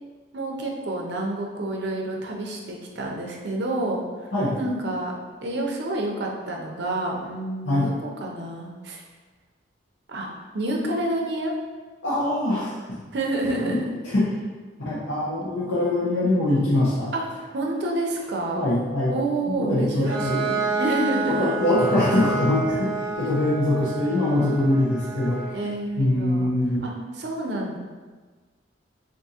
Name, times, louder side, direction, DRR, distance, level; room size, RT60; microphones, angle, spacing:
voice 1, 0.3-4.3 4.6-5.1 5.4-7.9 8.2-9.0 10.1-10.3 10.5-11.6 13.1-13.9 17.1-17.2 17.5-18.6 19.1-21.5 25.5-26.5 26.8-27.8, right 2 dB, 60° right, 0 dB, 0.5 m, -28 dB
voice 2, 12.0-12.7 13.7-13.8 14.0-14.2 14.8-17.1 18.5-19.2 19.5-20.4 21.3-25.4 26.0-26.8, left 1 dB, 80° left, -10 dB, 0.8 m, -23 dB
Bowed string instrument, 20.0-25.6, right 3 dB, 30° right, 1.0 m, -29 dB
3.5 x 2.6 x 2.8 m, 1.4 s
head